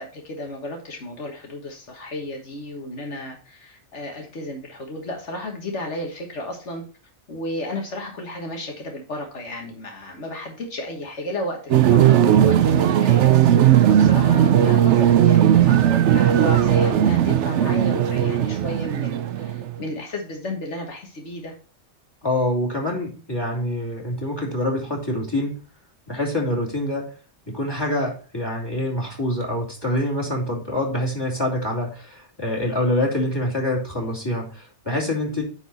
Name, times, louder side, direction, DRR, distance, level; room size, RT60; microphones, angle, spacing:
voice 1, 0.0-6.8 7.3-21.6, left 1 dB, 75° left, 2 dB, 1.7 m, -33 dB
sound 1, 11.7-19.8, right 10 dB, 75° right, 0.9 m, -17 dB
voice 2, 22.2-25.5 26.1-27.1 27.5-35.4, left 1 dB, 20° left, 0 dB, 2.8 m, -25 dB
9.7 x 4.3 x 4.1 m, 0.37 s
omnidirectional pair, 1.2 m